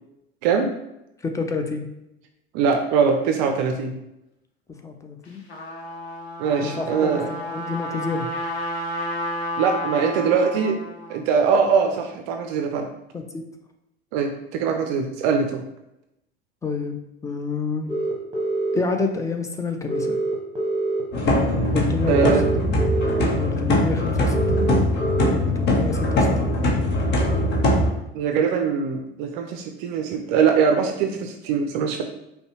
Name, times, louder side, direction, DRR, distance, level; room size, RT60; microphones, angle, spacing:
voice 1, 0.4-0.8 2.5-4.0 6.4-7.3 9.6-10.8 11.1-12.9 14.1-15.6 22.1-22.5 28.1-32.0, right 6 dB, 50° right, 5 dB, 0.5 m, -22 dB
voice 2, 1.2-1.9 4.8-5.4 6.6-8.3 13.1-13.4 16.6-17.9 18.7-20.2 21.7-22.8 23.4-24.7 25.3-26.5, left 4 dB, 10° left, 5 dB, 0.5 m, -29 dB
Trumpet, 5.2-11.2, left 1 dB, 80° left, 0.8 m, -31 dB
sound 1, 17.9-18.8 19.9-21.0 22.1-23.2 24.3-25.3, right 2 dB, 20° right, 1.0 m, -25 dB
sound 2, 21.1-27.9, left 1 dB, 35° left, 0.9 m, -21 dB
5.2 x 2.3 x 2.9 m, 0.87 s
figure-of-eight pair, 75°, 31 cm